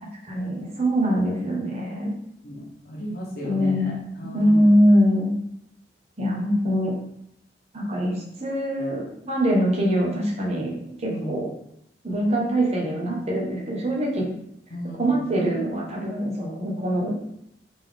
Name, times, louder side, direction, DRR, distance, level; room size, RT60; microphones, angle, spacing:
voice 1, 0.2-2.1 3.4-3.9 4.3-5.3 6.2-6.9 7.7-10.7 11.0-11.5 12.0-14.2 15.0-17.1, equal, 35° right, -3 dB, 1.1 m, -23 dB
voice 2, 2.4-4.6 11.1-11.3 14.7-15.3, equal, 55° left, -4 dB, 1.0 m, -35 dB
4.1 x 3.4 x 3.6 m, 0.76 s
head